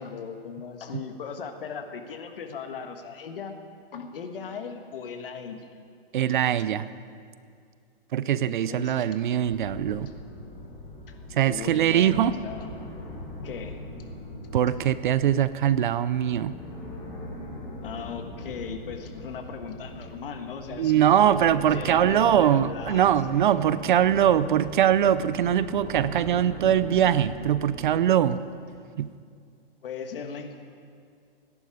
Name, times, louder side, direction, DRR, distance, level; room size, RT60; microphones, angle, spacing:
voice 1, 0.0-3.6 3.9-5.7 8.7-9.1 11.1-12.7 13.4-13.8 17.8-21.1 21.7-23.4 29.8-30.6, left 6 dB, 65° left, 6 dB, 1.5 m, -38 dB
voice 2, 6.1-6.9 8.1-10.1 11.3-12.3 14.5-16.5 20.7-28.4 29.0-29.1, right 10 dB, 55° right, 15 dB, 0.5 m, -22 dB
sound 1, 9.5-28.0, left 1 dB, 10° left, 1.6 m, -41 dB
17.0 x 11.0 x 4.9 m, 2.2 s
hypercardioid pair, 160°, 30 cm